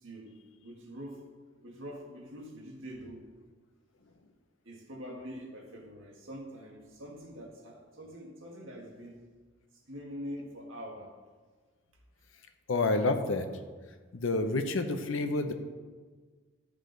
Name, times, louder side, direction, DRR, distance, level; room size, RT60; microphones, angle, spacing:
voice 1, 0.0-1.2 1.6-3.3 4.6-9.3 9.9-11.1, equal, 85° right, 0 dB, 1.6 m, -44 dB
voice 2, 12.7-13.5 14.1-15.5, left 2 dB, 90° left, 7 dB, 0.8 m, -28 dB
12.5 x 4.9 x 3.9 m, 1.5 s
head